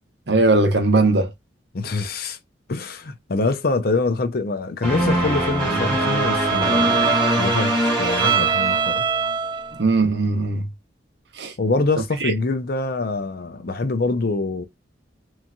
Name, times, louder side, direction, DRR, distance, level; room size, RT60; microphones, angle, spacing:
voice 1, 0.3-1.3 9.8-10.7 11.4-11.5 12.2-12.3, right 3 dB, 65° right, 0.7 m, -19 dB
voice 2, 1.7-2.4 2.7-9.1 11.6-14.6, left 3 dB, 55° left, 0.6 m, -25 dB
sound 1, 4.8-9.3, equal, 5° left, 1.5 m, -23 dB
Bowed string instrument, 5.1-9.8, right 7 dB, 25° right, 0.3 m, -24 dB
3.1 x 2.6 x 2.3 m
head